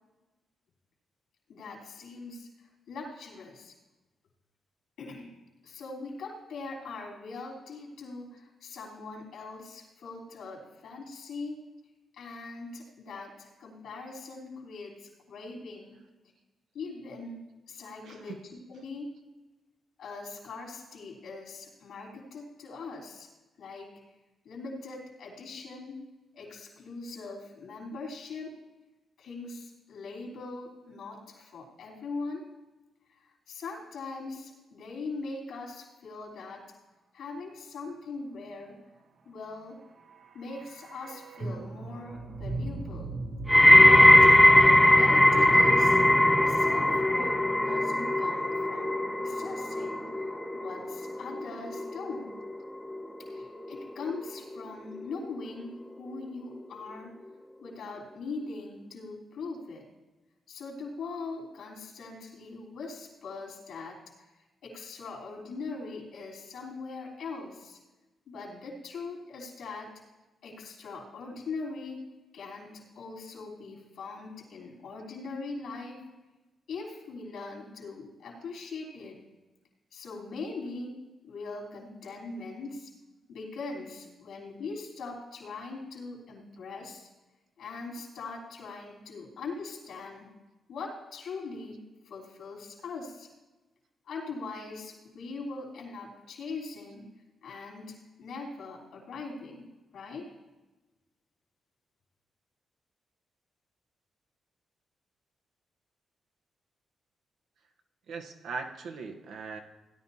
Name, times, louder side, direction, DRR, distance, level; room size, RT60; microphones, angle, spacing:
voice 1, 1.5-3.7 5.0-5.3 5.6-11.6 12.2-16.0 16.7-19.1 20.0-23.3 23.6-23.9 24.4-26.0 26.3-28.5 29.2-32.4 33.2-36.6 37.1-38.8 39.3-39.8 40.3-43.2 43.8-46.0 46.5-50.1 50.5-52.4 53.3-57.1 57.6-59.9 60.5-64.3 64.6-67.8 68.3-69.9 70.4-72.0 72.3-76.0 76.7-79.2 79.9-80.9 81.2-82.9 83.3-87.1 87.6-90.3 90.7-93.3 94.1-97.1 97.4-99.7 99.9-100.3, left 3 dB, 80° left, -3 dB, 3.6 m, -41 dB
voice 2, 18.0-18.4 108.1-109.6, right 4 dB, 80° right, 4 dB, 1.1 m, -39 dB
sound 1, 39.7-47.8 48.1-48.2, right 2 dB, 55° right, 0.9 m, -40 dB
sound 2, 43.5-54.6 54.9-55.4 56.2-56.3, left 1 dB, 5° left, 1.1 m, -21 dB
17.0 x 10.5 x 2.8 m, 1.1 s
cardioid pair, 70°, 0 cm